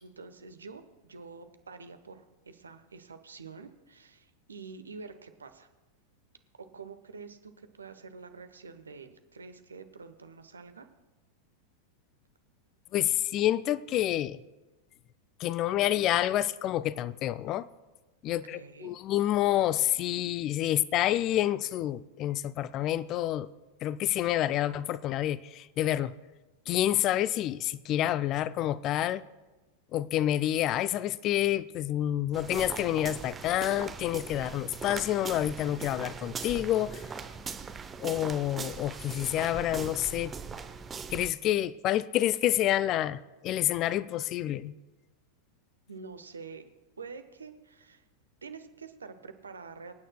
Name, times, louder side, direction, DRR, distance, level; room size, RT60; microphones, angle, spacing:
voice 1, 0.0-5.7 6.6-10.9 18.4-18.9 45.9-46.6 47.0-48.0 48.4-49.9, right 5 dB, 75° right, 0.9 m, -47 dB
voice 2, 12.9-14.4 15.4-17.7 18.2-23.5 23.8-26.1 26.7-29.2 29.9-37.1 38.0-40.3 41.1-44.7, left 13 dB, 35° left, 0.3 m, -28 dB
sound 1, 32.3-41.3, right 5 dB, 20° right, 0.7 m, -40 dB
25.5 x 9.0 x 2.2 m
figure-of-eight pair, 90°, 0 cm